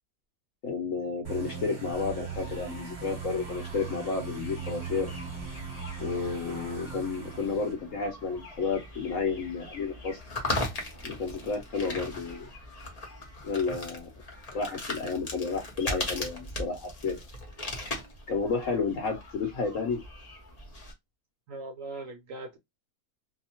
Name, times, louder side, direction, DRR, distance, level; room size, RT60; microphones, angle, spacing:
voice 1, 0.6-5.1 6.0-10.2 11.0-12.5 13.4-14.1 14.5-17.2 18.3-20.0, left 4 dB, 60° left, 0.9 m, -31 dB
sound 1, 1.2-7.7, right 6 dB, 30° right, 1.2 m, -39 dB
sound 2, 1.9-20.9, left 1 dB, 35° left, 0.6 m, -40 dB
voice 2, 21.5-22.6, right 2 dB, 65° right, 0.8 m, -40 dB
2.7 x 2.1 x 2.8 m
omnidirectional pair, 1.8 m